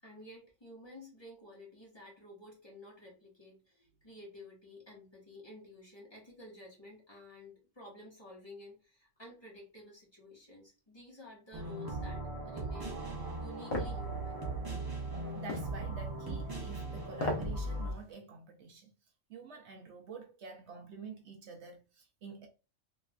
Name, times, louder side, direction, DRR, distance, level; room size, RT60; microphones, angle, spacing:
voice 1, 0.0-14.4, left 1 dB, 20° left, 1.1 m, -52 dB
sound 1, 11.5-17.9, right 2 dB, 25° right, 0.6 m, -38 dB
sound 2, 13.7-14.0 15.5-15.7 17.1-17.5 17.9-18.0, left 1 dB, 55° left, 0.9 m, -34 dB
voice 2, 15.3-18.9 19.3-22.5, right 5 dB, 65° right, 0.8 m, -48 dB
3.3 x 3.1 x 2.3 m
omnidirectional pair, 1.3 m